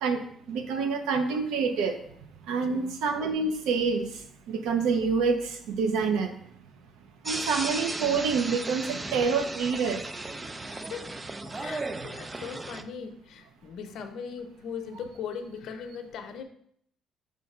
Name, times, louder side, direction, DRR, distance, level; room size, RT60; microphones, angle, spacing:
voice 1, 0.0-2.0 2.5-4.1 4.5-6.3 7.2-10.0, right 5 dB, 90° right, 7 dB, 0.8 m, -27 dB
voice 2, 2.7-3.0 10.7-11.2 11.4-16.4, left 6 dB, 70° left, 7 dB, 0.7 m, -39 dB
sound 1, 7.3-12.8, right 2 dB, 20° right, 0.4 m, -35 dB
5.3 x 3.3 x 5.5 m, 0.66 s
cardioid pair, 120°, 0 cm